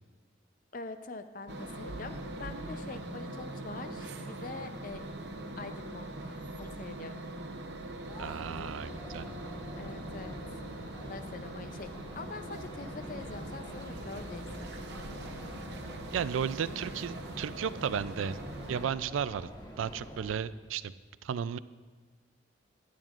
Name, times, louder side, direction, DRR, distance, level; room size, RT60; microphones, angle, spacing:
voice 1, 0.7-5.0 5.6-7.2 9.8-10.4 11.0-14.9, left 3 dB, 45° left, 9 dB, 0.5 m, -44 dB
sound 1, 1.5-18.9, right 1 dB, 55° right, 0.8 m, -42 dB
sound 2, 8.1-20.4, equal, 20° left, 1.1 m, -46 dB
voice 2, 8.2-9.3 16.1-18.4 18.7-19.5 19.8-20.9 21.2-21.6, right 7 dB, 85° right, 16 dB, 0.3 m, -34 dB
16.0 x 10.5 x 2.5 m, 1.4 s
head